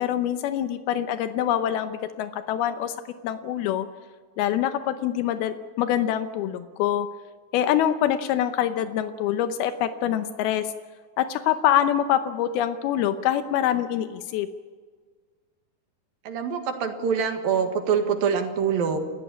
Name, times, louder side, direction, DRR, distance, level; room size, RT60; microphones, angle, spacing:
voice 1, 0.0-2.9 3.2-3.9 4.4-7.1 7.5-10.7 11.2-14.5, left 11 dB, 85° left, 9 dB, 2.8 m, -25 dB
voice 2, 16.3-19.0, right 6 dB, 75° right, 5 dB, 3.4 m, -25 dB
29.5 x 14.5 x 8.5 m, 1.5 s
omnidirectional pair, 4.3 m